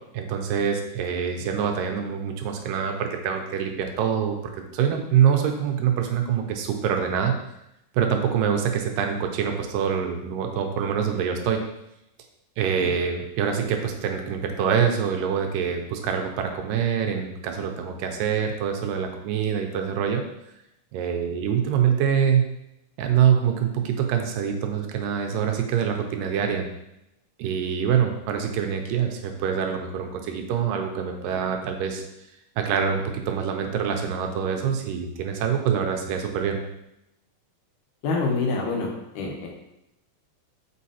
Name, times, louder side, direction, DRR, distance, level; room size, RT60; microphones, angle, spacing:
voice 1, 0.1-7.4 7.9-11.6 12.6-20.2 20.9-22.4 23.0-26.7 27.4-32.0 32.6-36.6, right 8 dB, 90° right, 4 dB, 2.3 m, -25 dB
voice 2, 38.0-38.9 39.2-39.5, left 3 dB, 75° left, 0 dB, 2.5 m, -26 dB
7.3 x 4.6 x 2.8 m, 0.85 s
omnidirectional pair, 3.9 m